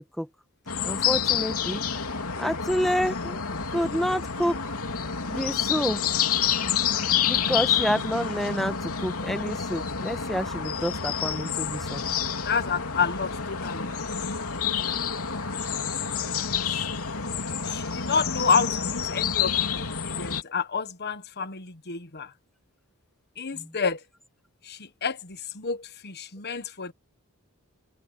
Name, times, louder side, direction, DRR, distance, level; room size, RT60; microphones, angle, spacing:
sound 1, 0.7-20.4, left 7 dB, 80° left, 3.3 m, -28 dB
voice 1, 0.8-1.8 2.4-3.4 3.7-4.6 5.3-6.3 7.3-12.0 23.5-23.7, equal, ahead, 1.2 m, -29 dB
voice 2, 12.4-13.9 16.6-16.9 17.6-22.3 23.4-24.0 24.6-26.9, left 5 dB, 50° left, 1.3 m, -29 dB
head